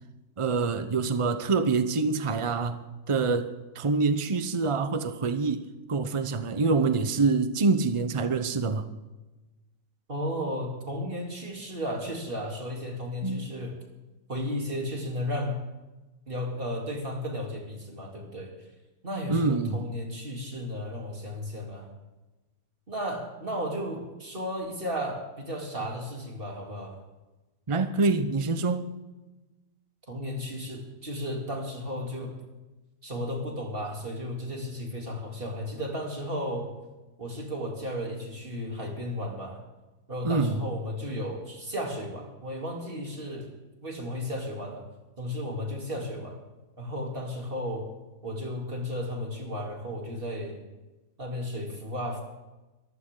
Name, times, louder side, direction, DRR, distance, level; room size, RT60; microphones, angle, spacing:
voice 1, 0.4-2.8 3.1-5.6 5.9-8.9 13.2-13.4 19.3-19.9 27.7-29.0 40.2-40.6, right 4 dB, 55° right, 0.3 m, -26 dB
voice 2, 10.1-13.8 14.3-15.6 16.3-18.5 19.0-21.9 22.9-27.0 30.1-32.3 33.0-36.7 37.2-39.6 40.1-43.5 43.8-44.9 45.2-46.4 46.8-47.9 48.2-50.6 51.2-52.2, equal, 30° right, 3.5 m, -34 dB
23.0 x 15.5 x 3.9 m
omnidirectional pair, 1.8 m